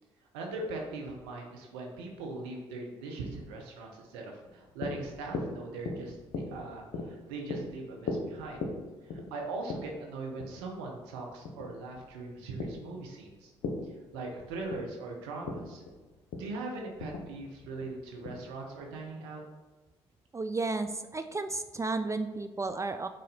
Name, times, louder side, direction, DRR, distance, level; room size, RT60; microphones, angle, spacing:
voice 1, 0.3-8.6 9.0-13.5 14.1-15.8 16.4-19.4, right 3 dB, 75° right, 0 dB, 0.9 m, -40 dB
sound 1, 4.4-19.0, left 3 dB, 60° left, 1.0 m, -40 dB
voice 2, 20.3-23.1, right 3 dB, 20° right, 9 dB, 0.4 m, -33 dB
6.3 x 4.1 x 4.1 m, 1.2 s
figure-of-eight pair, 45°, 14 cm